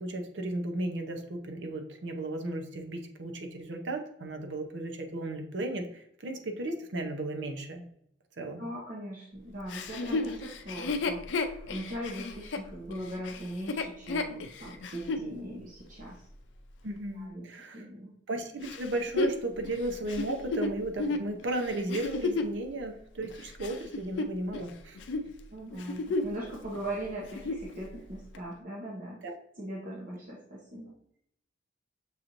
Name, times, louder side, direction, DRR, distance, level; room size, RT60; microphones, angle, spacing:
voice 1, 0.0-7.8 8.4-8.6 16.8-17.8 18.3-25.0 29.2-29.4, right 2 dB, 85° right, 4 dB, 0.7 m, -35 dB
voice 2, 8.6-16.2 17.1-17.5 17.7-18.1 25.5-29.2 29.6-30.9, right 1 dB, 50° right, -5 dB, 0.9 m, -40 dB
Chuckle chortle, 9.7-15.3 15.9-16.0 18.6-22.6 23.2-24.7 25.0-25.3 25.7-26.4 26.7-26.8 27.2-27.7 28.3-28.4, left 3 dB, 85° left, 0.4 m, -33 dB
6.5 x 2.6 x 2.9 m, 0.72 s
head